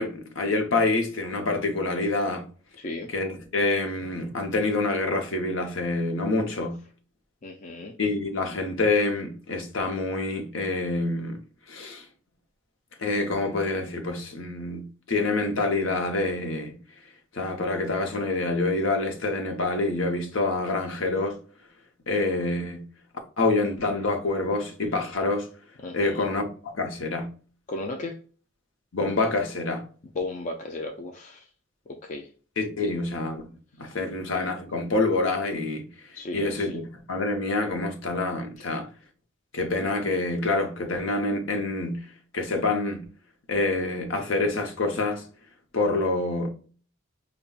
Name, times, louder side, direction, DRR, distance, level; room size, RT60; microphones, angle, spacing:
voice 1, 0.0-2.5 3.1-6.8 8.0-11.4 11.7-12.0 13.0-16.8 17.3-21.4 22.1-22.9 23.4-25.5 25.9-27.3 28.9-29.9 32.6-33.5 33.8-35.9 36.3-38.9 39.5-42.1 42.3-43.0 43.5-45.2 45.7-46.5, left 2 dB, 70° left, 0.8 m, -27 dB
voice 2, 2.8-3.1 7.4-7.9 25.8-26.3 27.7-28.2 30.1-31.5 31.9-32.3 32.8-32.9 33.8-34.0 36.1-36.8, left 2 dB, 35° left, 0.4 m, -35 dB
5.4 x 2.2 x 2.4 m
head